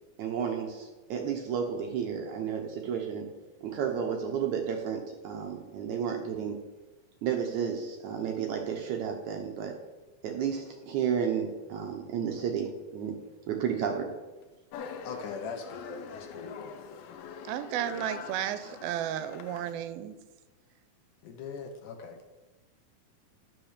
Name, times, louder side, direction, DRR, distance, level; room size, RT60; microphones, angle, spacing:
voice 1, 0.2-3.3 3.6-6.6 7.2-9.8 10.2-13.2 13.5-14.1, right 7 dB, 70° right, 2 dB, 1.8 m, -32 dB
sound 1, 14.7-19.7, left 6 dB, 90° left, 2.6 m, -44 dB
voice 2, 15.0-16.6 21.2-22.4, left 5 dB, 70° left, 5 dB, 2.2 m, -40 dB
voice 3, 17.5-20.2, right 11 dB, 90° right, 12 dB, 2.5 m, -33 dB
12.0 x 5.7 x 6.5 m, 1.2 s
omnidirectional pair, 4.3 m